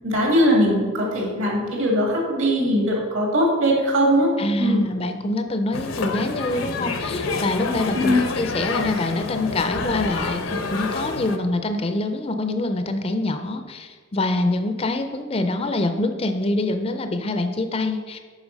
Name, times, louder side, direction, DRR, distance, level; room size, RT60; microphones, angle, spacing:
voice 1, 0.0-4.3 4.6-4.9 7.9-8.2, equal, 70° right, -1 dB, 2.3 m, -20 dB
voice 2, 4.4-18.2, left 2 dB, 30° left, 8 dB, 0.5 m, -25 dB
sound 1, 5.7-11.4, left 3 dB, 80° left, 0.8 m, -28 dB
8.1 x 5.8 x 5.2 m, 1.5 s
head